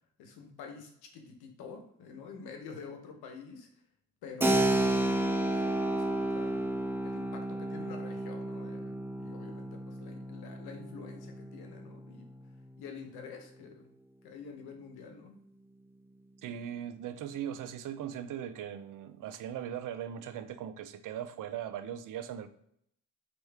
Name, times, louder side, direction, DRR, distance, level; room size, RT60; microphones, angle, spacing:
voice 1, 0.2-3.7 4.2-12.3 12.8-13.9 14.2-15.4, left 5 dB, 80° left, 1.0 m, -48 dB
Keyboard (musical), 4.4-12.8, right 1 dB, 5° right, 0.5 m, -32 dB
voice 2, 16.4-22.5, right 9 dB, 55° right, 0.5 m, -39 dB
4.4 x 3.0 x 3.3 m
cardioid pair, 80°, 37 cm